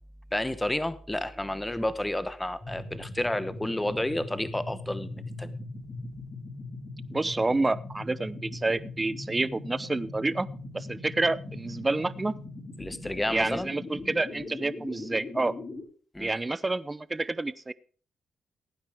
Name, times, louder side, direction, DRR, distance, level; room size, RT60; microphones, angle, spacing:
voice 1, 0.3-5.5 12.8-13.7 16.1-16.3, left 1 dB, 10° left, 14 dB, 0.9 m, -31 dB
sound 1, 2.6-15.8, left 2 dB, 35° left, 5.6 m, -40 dB
voice 2, 7.1-10.5 10.7-12.3 13.3-15.5 16.2-17.7, right 2 dB, 20° right, 18 dB, 0.7 m, -28 dB
17.0 x 9.5 x 3.5 m, 0.42 s
cardioid pair, 80°, 0 cm